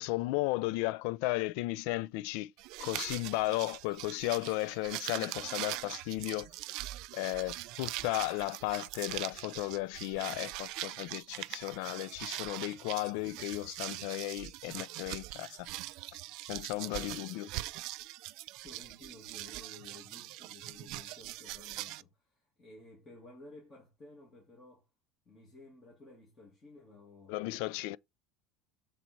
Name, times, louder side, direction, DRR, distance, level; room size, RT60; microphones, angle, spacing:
voice 1, 0.0-2.5 2.8-6.5 7.1-15.7 16.5-17.5 27.3-28.0, left 19 dB, 70° left, 0.3 m, -35 dB
sound 1, 2.6-22.0, right 18 dB, 55° right, 0.3 m, -42 dB
voice 2, 16.8-17.2 18.6-24.9 25.3-27.6, left 2 dB, 20° left, 2.2 m, -55 dB
7.5 x 4.0 x 4.4 m
cardioid pair, 170°, 0 cm